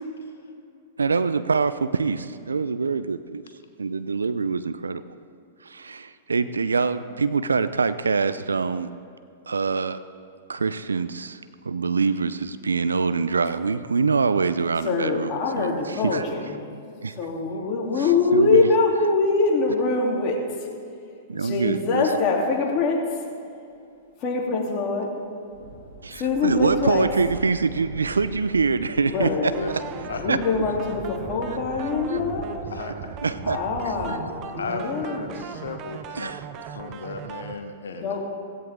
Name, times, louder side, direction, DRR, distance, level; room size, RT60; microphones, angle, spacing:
voice 1, 1.0-3.4 3.8-5.0 5.7-8.9 9.5-10.0 10.5-11.4 11.6-16.3 17.0-17.1 18.0-18.7 21.3-22.1 26.0-29.5 30.3-30.4 31.5-32.2 33.2-33.6 33.8-34.2 36.2-36.4, right 4 dB, 85° right, 13 dB, 0.6 m, -25 dB
voice 2, 14.8-16.5 17.2-20.4 21.3-23.0 24.2-25.1 26.2-27.1 29.0-29.6 30.0-32.5 33.4-35.4 37.9-38.2, left 3 dB, 35° left, -2 dB, 3.3 m, -24 dB
sound 1, 25.5-34.2, right 3 dB, 65° right, 4.0 m, -42 dB
sound 2, 29.5-37.5, right 7 dB, 35° right, 1.0 m, -38 dB
voice 3, 34.6-36.3 36.7-38.2, left 4 dB, 75° left, 5 dB, 1.2 m, -35 dB
16.5 x 16.5 x 3.8 m, 2.6 s
figure-of-eight pair, 105°, 0 cm